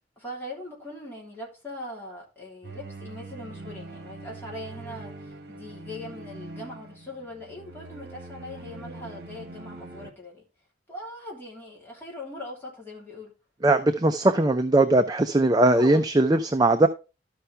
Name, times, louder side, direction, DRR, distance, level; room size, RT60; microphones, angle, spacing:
voice 1, 0.2-10.4 10.9-13.3 15.6-16.1, left 1 dB, 10° left, 3.1 m, -41 dB
sound 1, 2.6-10.1, right 2 dB, 60° right, 1.5 m, -42 dB
voice 2, 13.6-16.9, right 2 dB, 20° right, 0.5 m, -20 dB
13.0 x 5.5 x 3.4 m
head